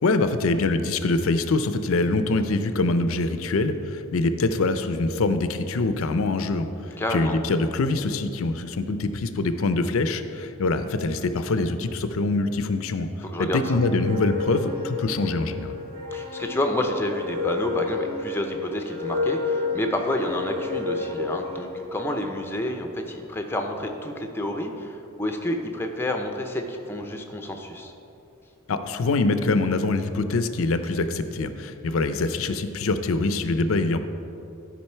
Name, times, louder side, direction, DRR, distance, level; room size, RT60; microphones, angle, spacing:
voice 1, 0.0-13.1 13.4-15.8 28.7-34.0, left 3 dB, 65° left, 10 dB, 0.5 m, -24 dB
voice 2, 7.0-7.4 13.2-13.6 16.1-27.9, left 1 dB, 10° left, 4 dB, 0.6 m, -29 dB
sound 1, 13.7-21.9, left 4 dB, 75° right, 1.0 m, -30 dB
12.0 x 5.1 x 4.5 m, 2.8 s
head